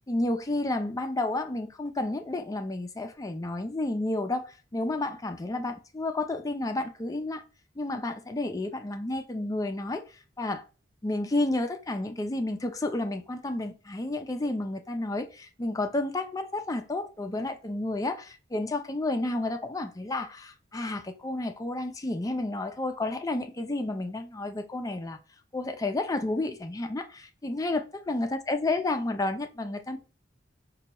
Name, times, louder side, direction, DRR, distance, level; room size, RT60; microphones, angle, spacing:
voice 1, 0.1-7.4 7.8-10.0 10.4-10.6 11.0-25.2 25.5-27.8 28.1-30.0, left 2 dB, 20° left, 0.4 m, -31 dB
4.1 x 2.2 x 2.9 m
head